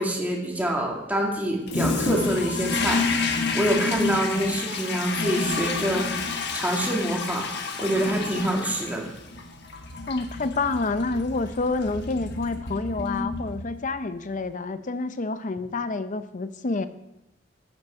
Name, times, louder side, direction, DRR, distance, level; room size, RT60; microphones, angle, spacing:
voice 1, 0.0-3.0 3.5-6.1 6.5-9.1, right 1 dB, 10° right, -2 dB, 2.3 m, -26 dB
Toilet flush, 1.7-14.0, left 4 dB, 60° left, 1.3 m, -29 dB
voice 2, 10.1-16.9, left 3 dB, 40° left, 11 dB, 0.6 m, -28 dB
12.0 x 9.9 x 4.5 m, 0.91 s
head